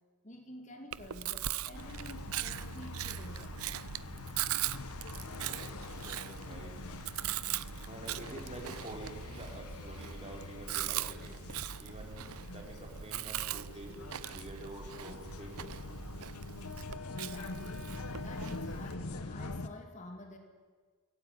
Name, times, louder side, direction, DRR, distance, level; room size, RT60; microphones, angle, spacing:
voice 1, 0.2-3.7 17.0-17.9 18.2-20.4, left 1 dB, 30° left, 4 dB, 2.5 m, -49 dB
Chewing mastication, 0.9-18.9, right 11 dB, 75° right, 0.6 m, -40 dB
sound 1, 1.7-19.7, left 2 dB, 80° left, 1.3 m, -44 dB
voice 2, 5.4-6.8 7.9-11.3 11.8-13.9 14.2-15.6, right 1 dB, 30° right, 2 dB, 4.2 m, -48 dB
24.5 x 17.5 x 9.7 m, 1.5 s
head